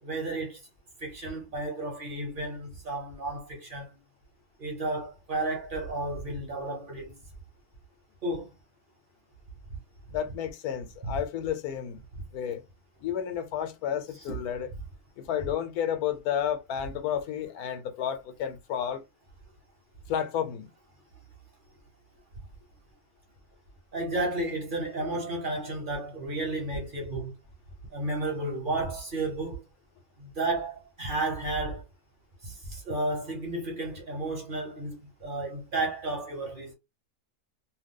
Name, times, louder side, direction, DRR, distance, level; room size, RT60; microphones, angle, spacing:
voice 1, 0.0-0.6 1.0-3.9 4.6-7.2 8.2-8.5 11.1-11.2 14.3-14.4 23.9-27.3 27.9-29.6 30.2-31.8 32.4-36.7, right 2 dB, 40° right, 0.9 m, -32 dB
voice 2, 10.1-12.0 12.3-12.6 13.0-14.7 15.2-19.0 20.1-20.7 24.0-24.1 25.0-25.2, left 9 dB, 85° left, 1.2 m, -31 dB
2.7 x 2.2 x 3.5 m
omnidirectional pair, 1.6 m